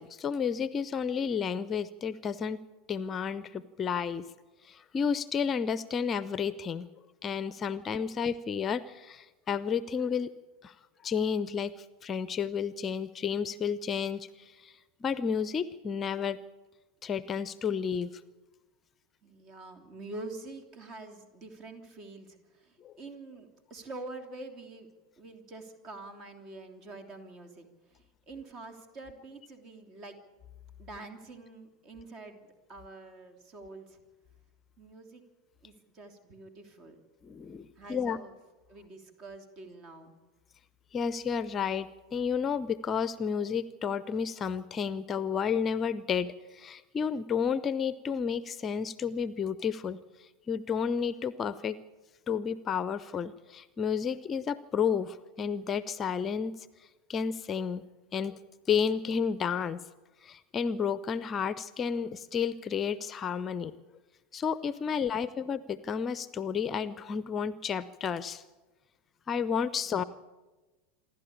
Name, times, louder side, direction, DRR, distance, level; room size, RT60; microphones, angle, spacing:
voice 1, 0.0-2.6 2.9-4.2 4.6-6.9 7.2-10.3 10.6-10.7 11.0-16.4 17.0-18.1 22.8-22.9 37.2-38.2 40.9-51.8 52.3-57.8 58.1-58.4 58.7-59.8 60.2-63.7 64.3-68.4 69.3-70.0, left 6 dB, 25° left, 17 dB, 0.7 m, -31 dB
voice 2, 7.7-8.2 19.2-24.9 25.2-30.2 30.8-34.0 34.8-35.2 35.6-37.0 37.7-38.3 38.7-40.1 65.1-65.4 69.8-70.1, right 2 dB, 35° right, 6 dB, 3.2 m, -46 dB
27.0 x 12.0 x 8.7 m, 1.2 s
figure-of-eight pair, 85°, 0 cm